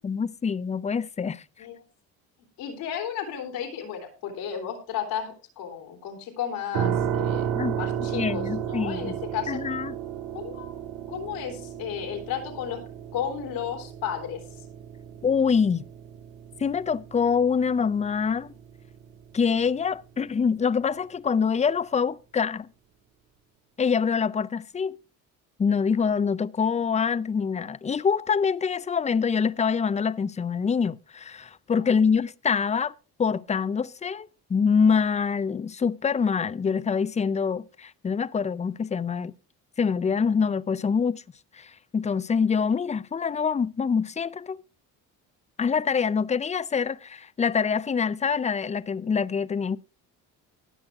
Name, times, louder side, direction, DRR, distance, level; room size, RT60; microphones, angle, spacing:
voice 1, 0.0-1.4 7.5-9.1 9.5-9.9 15.2-15.8 16.6-18.5 19.3-22.7 23.8-25.0 25.6-32.9 33.2-39.3 39.8-41.2 41.5-44.6 45.6-49.8, left 6 dB, 20° left, 0.5 m, -25 dB
voice 2, 2.6-7.5 7.8-9.6 10.3-10.8 11.1-12.8 13.1-14.4 31.8-31.9, left 9 dB, 85° left, 3.3 m, -33 dB
sound 1, 6.7-19.6, right 9 dB, 90° right, 1.3 m, -33 dB
18.0 x 6.3 x 3.5 m
supercardioid pair, 75°, 35 cm